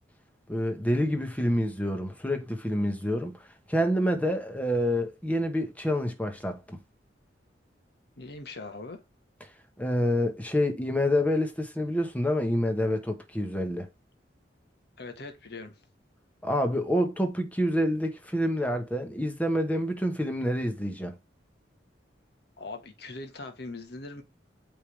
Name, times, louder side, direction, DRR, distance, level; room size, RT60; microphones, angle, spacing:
voice 1, 0.5-3.4 3.7-6.8 9.8-13.9 16.4-21.1, equal, 10° left, 1.1 m, -27 dB
voice 2, 8.2-9.0 15.0-15.8 22.6-24.2, left 3 dB, 65° left, 1.4 m, -41 dB
8.3 x 3.7 x 3.3 m
head